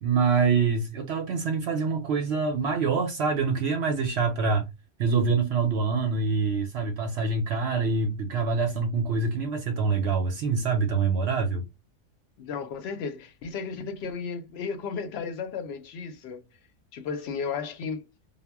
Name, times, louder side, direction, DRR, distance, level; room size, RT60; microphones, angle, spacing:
voice 1, 0.0-4.7 5.0-11.7, right 4 dB, 65° right, 0.7 m, -25 dB
voice 2, 12.4-16.4 16.9-18.1, left 5 dB, 65° left, 0.7 m, -34 dB
2.2 x 2.0 x 3.3 m
omnidirectional pair, 1.3 m